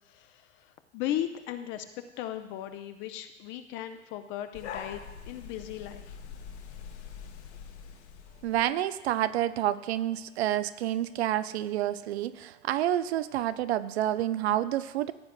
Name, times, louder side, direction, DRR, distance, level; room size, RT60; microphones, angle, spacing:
voice 1, 0.0-1.9 2.2-5.0 5.3-6.2, left 11 dB, 35° left, 8 dB, 0.6 m, -37 dB
Urban Atmos with Dogs Darwin, 4.5-8.8, left 7 dB, 60° left, 1.4 m, -44 dB
voice 2, 8.4-15.1, right 12 dB, 60° right, 14 dB, 0.6 m, -29 dB
15.5 x 8.1 x 2.2 m, 0.97 s
figure-of-eight pair, 95°, 37 cm